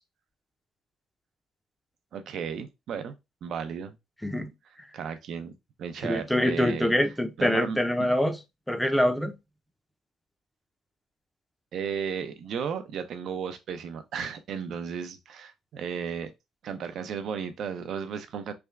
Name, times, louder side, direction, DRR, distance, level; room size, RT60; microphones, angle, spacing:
voice 1, 2.1-4.0 4.9-5.5 5.8-6.9 7.4-7.8 11.7-16.3 16.6-18.5, right 7 dB, 60° right, 0.6 m, -34 dB
voice 2, 6.0-8.4 8.7-9.3, left 1 dB, 5° left, 0.6 m, -25 dB
3.4 x 2.2 x 3.3 m
cardioid pair, 100°, 0 cm